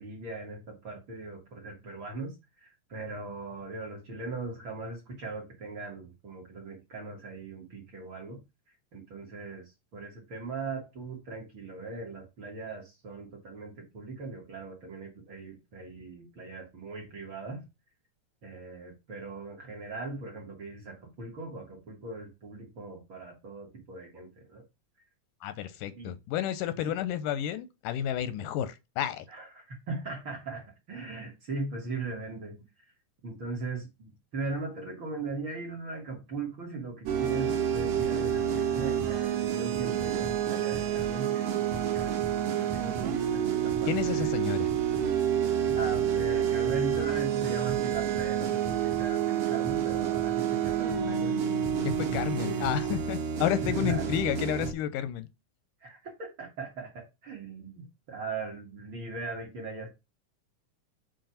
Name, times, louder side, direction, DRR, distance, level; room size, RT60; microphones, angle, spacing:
voice 1, 0.0-8.4 8.7-17.6 18.4-24.6 26.0-26.2 29.3-32.6 33.2-44.4 45.7-51.4 52.1-52.7 53.6-54.1 55.8-59.9, right 3 dB, 50° right, 1.7 m, -39 dB
voice 2, 25.4-29.3 43.9-44.7 52.0-55.3, left 10 dB, 85° left, 2.1 m, -31 dB
sound 1, 37.1-54.7, right 9 dB, 70° right, 1.5 m, -29 dB
7.5 x 2.6 x 5.6 m
omnidirectional pair, 3.7 m